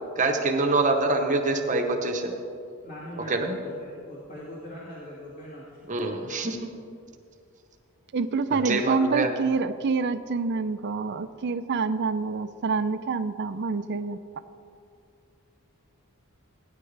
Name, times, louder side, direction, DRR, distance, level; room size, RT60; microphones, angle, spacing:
voice 1, 0.2-2.3 3.3-3.5 5.9-6.7 8.5-9.3, right 3 dB, 35° right, 4 dB, 0.8 m, -25 dB
voice 2, 2.8-5.8, equal, 40° left, -8 dB, 2.1 m, -41 dB
voice 3, 8.1-14.2, right 4 dB, 50° right, 12 dB, 0.5 m, -27 dB
16.5 x 9.7 x 3.3 m, 2.4 s
head